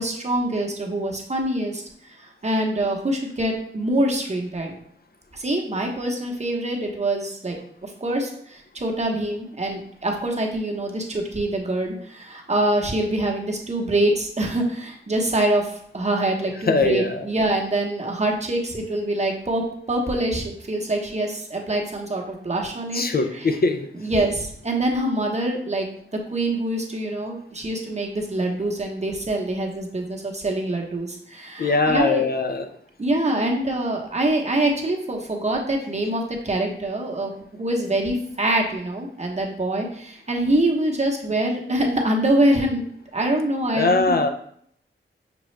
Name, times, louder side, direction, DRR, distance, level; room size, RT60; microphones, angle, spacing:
voice 1, 0.0-1.8 2.4-4.8 5.3-7.6 7.8-19.6 19.9-23.0 23.3-23.5 24.0-25.9 26.3-32.2 33.0-42.8 43.1-44.2, right 1 dB, 35° right, 1 dB, 0.9 m, -24 dB
voice 2, 16.7-17.2 22.9-23.9 31.6-32.7 43.8-44.3, left 3 dB, 45° left, 6 dB, 0.4 m, -21 dB
6.0 x 2.3 x 3.2 m, 0.66 s
cardioid pair, 60°, 21 cm